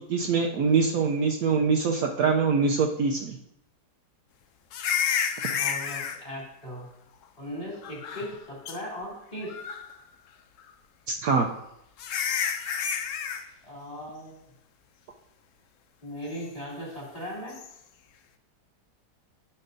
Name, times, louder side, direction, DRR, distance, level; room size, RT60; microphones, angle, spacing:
voice 1, 0.0-3.4 11.1-11.5, right 5 dB, 70° right, 1 dB, 1.0 m, -24 dB
sound 1, 4.7-6.2 7.8-8.4 8.7-8.8 9.4-9.9 11.3-11.4 12.0-13.4 17.5-17.7, left 7 dB, 70° left, 0.7 m, -30 dB
voice 2, 5.5-6.9 7.4-9.6 13.6-14.5 16.0-17.6, equal, 20° left, -5 dB, 2.6 m, -38 dB
9.7 x 6.7 x 2.6 m, 0.80 s
omnidirectional pair, 1.8 m